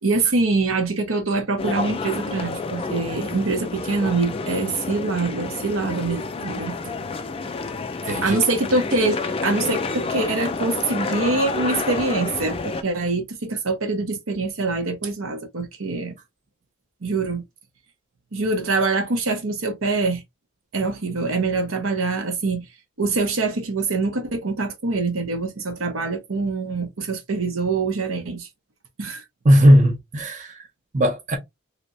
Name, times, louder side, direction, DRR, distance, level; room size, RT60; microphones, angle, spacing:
voice 1, 0.0-6.8 8.2-16.1 17.0-17.4 18.3-20.2 20.7-22.7 23.0-28.5 29.0-29.2, right 3 dB, 65° right, 0.9 m, -24 dB
sound 1, 1.6-12.8, left 3 dB, 25° left, 0.3 m, -29 dB
voice 2, 8.0-8.4 29.4-30.7 30.9-31.4, equal, 35° right, 0.7 m, -17 dB
3.3 x 2.9 x 2.6 m
head